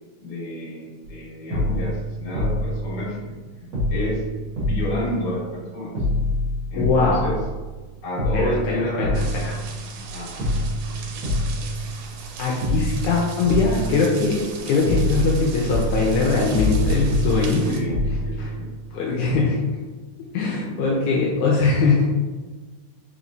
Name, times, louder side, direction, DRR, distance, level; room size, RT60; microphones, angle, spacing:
voice 1, 0.2-3.2 3.9-4.2 4.6-5.9 6.7-7.4 8.0-9.1 10.1-10.5 10.9-11.2 17.6-18.0 18.2-18.7 20.4-20.6, left 1 dB, 45° left, -7 dB, 1.6 m, -30 dB
sound 1, 1.0-1.2 1.5-3.4 3.7-5.6 5.9-7.8 8.2-10.1 10.4-12.3 12.6-14.5 14.8-19.0 19.3-19.4, left 1 dB, 60° right, 1.1 m, -26 dB
voice 2, 6.7-7.2 8.3-9.6 12.4-17.8 18.1-18.5 18.9-19.8 20.3-22.0, left 3 dB, 80° left, -3 dB, 1.9 m, -22 dB
sound 2, 9.1-17.8, right 4 dB, 85° right, 2.2 m, -38 dB
4.9 x 3.1 x 2.6 m, 1.3 s
omnidirectional pair, 3.6 m